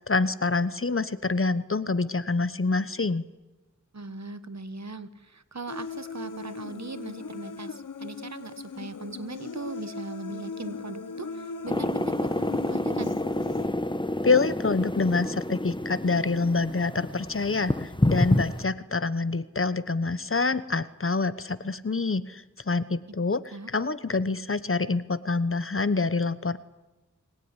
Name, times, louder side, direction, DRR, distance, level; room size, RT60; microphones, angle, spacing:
voice 1, 0.0-3.2 14.2-23.4 23.7-26.6, left 3 dB, 45° left, 15 dB, 1.0 m, -26 dB
voice 2, 3.9-13.1 23.5-23.7, right 3 dB, 60° right, 12 dB, 1.4 m, -39 dB
Human voice, 5.7-13.7, left 5 dB, 85° left, 0.8 m, -39 dB
sound 1, 11.7-18.6, left 1 dB, 15° left, 1.2 m, -28 dB
23.5 x 19.5 x 9.8 m, 1.1 s
wide cardioid pair, 45°, 31 cm